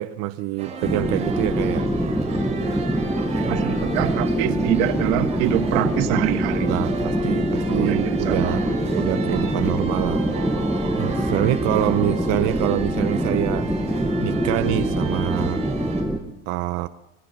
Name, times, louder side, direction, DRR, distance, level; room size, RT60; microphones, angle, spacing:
voice 1, 0.0-1.9 4.6-4.8 6.6-8.6 8.9-10.3 11.0-13.7 14.2-15.6 16.5-16.9, right 16 dB, 50° right, 10 dB, 0.7 m, -25 dB
sound 1, 0.6-16.0, right 1 dB, 20° right, 5.7 m, -32 dB
sound 2, 0.8-16.2, right 1 dB, ahead, 1.2 m, -24 dB
voice 2, 3.2-6.8 7.7-8.7, right 13 dB, 90° right, 6 dB, 2.0 m, -25 dB
26.5 x 19.5 x 5.9 m, 0.90 s
cardioid pair, 170°, 33 cm